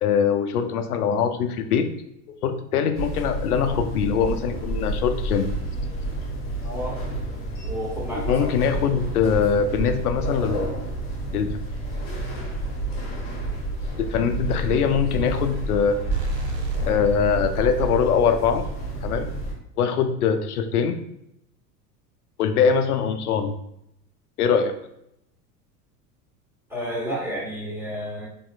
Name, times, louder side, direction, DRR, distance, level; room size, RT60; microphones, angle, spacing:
voice 1, 0.0-1.9 2.4-5.5 8.1-10.7 11.3-11.5 14.0-16.0 16.9-18.6 19.0-19.3 19.8-21.0 22.4-23.6 24.4-24.7, left 7 dB, 70° left, 8 dB, 0.6 m, -22 dB
sound 1, 2.9-19.5, right 2 dB, 25° left, 1.3 m, -30 dB
voice 2, 6.6-7.0 7.6-8.4 26.7-28.3, equal, 5° right, -5 dB, 1.4 m, -31 dB
sound 2, 16.0-17.3, right 3 dB, 85° right, 0.6 m, -29 dB
4.2 x 3.0 x 2.2 m, 0.79 s
figure-of-eight pair, 80°, 48 cm